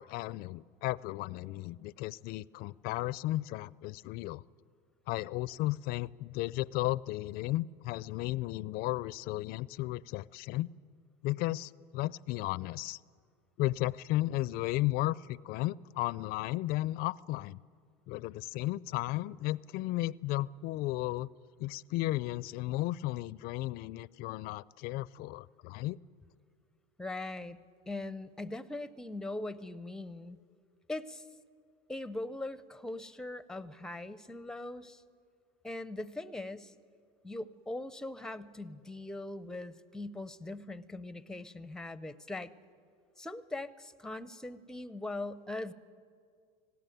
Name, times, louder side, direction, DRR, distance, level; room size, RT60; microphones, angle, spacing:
voice 1, 0.0-4.4 5.1-10.7 11.2-13.0 13.6-17.6 18.1-21.3 21.6-26.0, left 17 dB, 50° left, 22 dB, 0.4 m, -34 dB
voice 2, 27.0-27.6 27.9-30.4 30.9-31.3 31.9-35.0 35.6-36.7 37.2-42.5 43.2-45.7, left 2 dB, 5° left, 15 dB, 0.6 m, -41 dB
18.5 x 17.0 x 9.2 m, 2.2 s
supercardioid pair, 115°, 20 cm